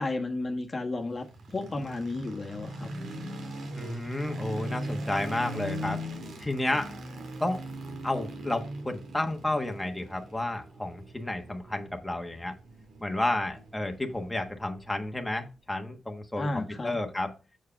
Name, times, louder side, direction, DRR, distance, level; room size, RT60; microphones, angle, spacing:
voice 1, 0.0-2.9 16.4-17.0, left 2 dB, 35° left, 3 dB, 1.2 m, -33 dB
sound 1, 1.1-15.2, right 1 dB, 80° right, 2.0 m, -40 dB
voice 2, 3.7-6.0 6.4-6.9 7.4-7.6 8.0-12.5 13.0-17.3, left 1 dB, 10° left, 3 dB, 1.3 m, -31 dB
7.4 x 4.7 x 5.7 m, 0.32 s
cardioid pair, 85°, 0 cm